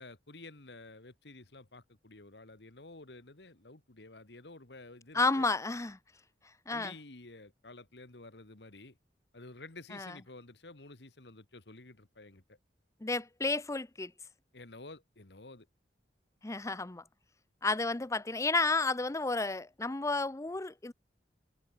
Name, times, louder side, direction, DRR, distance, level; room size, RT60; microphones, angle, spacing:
voice 1, 0.0-5.5 6.7-9.0 9.3-12.6 14.5-15.7, left 2 dB, 70° left, 2.0 m, -51 dB
voice 2, 5.1-6.0 6.7-6.9 9.9-10.2 13.0-14.1 16.4-17.0 17.6-20.9, left 3 dB, 20° left, 0.6 m, -31 dB
head